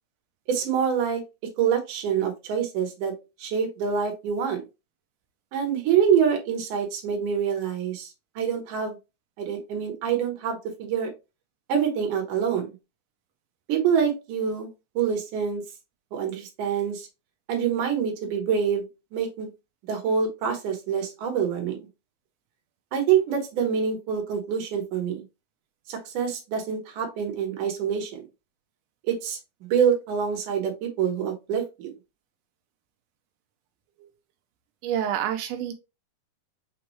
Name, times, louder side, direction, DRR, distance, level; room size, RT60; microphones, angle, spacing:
voice 1, 0.5-1.2 1.6-3.1 3.4-4.6 5.5-8.1 8.4-9.0 9.4-11.1 11.7-12.7 13.7-15.6 16.1-17.1 17.5-18.9 19.1-19.5 19.8-21.8 22.9-25.2 25.9-28.2 29.1-31.9, right 7 dB, 65° right, 3 dB, 2.3 m, -26 dB
voice 2, 34.8-35.7, right 10 dB, 85° right, 5 dB, 1.8 m, -28 dB
6.1 x 2.3 x 3.0 m, 0.26 s
omnidirectional pair, 4.2 m